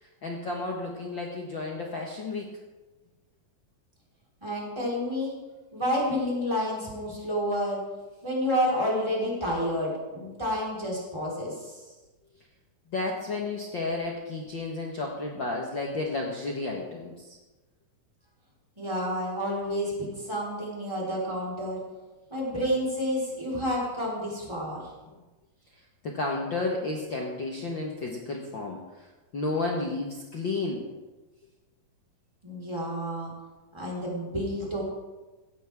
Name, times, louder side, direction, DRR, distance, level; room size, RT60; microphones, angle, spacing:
voice 1, 0.0-2.5 12.9-17.4 26.0-29.1 29.3-30.9, left 3 dB, 50° left, -1 dB, 1.6 m, -32 dB
voice 2, 4.4-5.3 5.7-7.8 8.2-11.8 18.8-21.8 22.3-24.9 32.4-33.3 33.7-34.8, equal, 10° right, -4 dB, 4.3 m, -29 dB
16.5 x 14.5 x 3.6 m, 1.1 s
omnidirectional pair, 3.8 m